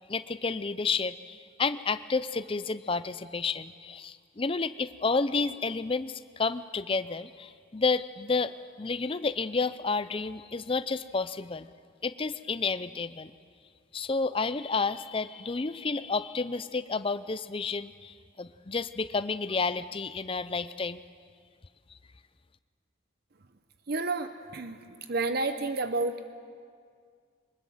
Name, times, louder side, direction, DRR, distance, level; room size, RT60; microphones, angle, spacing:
voice 1, 0.1-8.5 8.8-11.7 12.0-13.3 13.9-21.0, left 4 dB, 25° left, 13 dB, 0.5 m, -30 dB
voice 2, 23.9-24.8 25.1-26.2, right 3 dB, 50° right, 9 dB, 0.7 m, -30 dB
23.0 x 20.5 x 7.9 m, 2.1 s
head